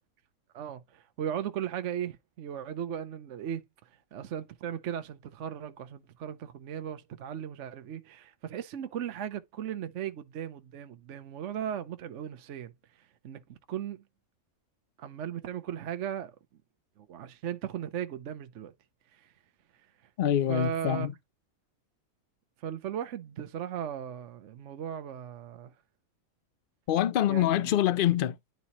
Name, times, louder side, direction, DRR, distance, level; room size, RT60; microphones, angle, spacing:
voice 1, 0.5-3.6 4.1-12.7 13.0-14.0 15.0-16.4 17.0-18.7 19.1-19.3 20.5-21.1 22.6-25.7 27.3-27.7, right 9 dB, 60° right, 1.0 m, -37 dB
voice 2, 20.2-21.1 26.9-28.4, left 11 dB, 65° left, 0.5 m, -25 dB
10.5 x 4.1 x 2.9 m
omnidirectional pair, 1.5 m